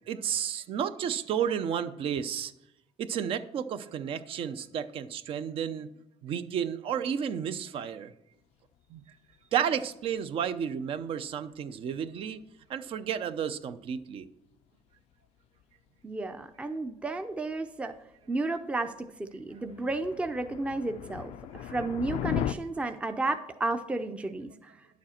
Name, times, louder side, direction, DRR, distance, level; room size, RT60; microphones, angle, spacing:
voice 1, 0.1-2.5 3.0-5.9 6.2-8.1 8.9-9.0 9.5-12.4 12.7-14.3 21.6-21.7, right 8 dB, 55° right, 12 dB, 0.7 m, -32 dB
sound 1, 9.0-9.1 9.3-9.6 10.0-10.2 10.4-10.6 11.2-11.3 11.9-12.0 12.9-13.0 13.6-14.2 14.5-14.6 15.0-15.6 16.2-16.3 16.5-16.6 17.2-17.3 17.5-17.6 18.0-18.4 18.7-18.8 19.4-22.5, left 11 dB, 75° left, 0.4 m, -36 dB
voice 2, 16.0-17.9 18.3-21.3 21.6-24.7, right 2 dB, 10° right, 7 dB, 0.6 m, -32 dB
10.5 x 7.3 x 4.4 m, 0.86 s
cardioid pair, 130°, 11 cm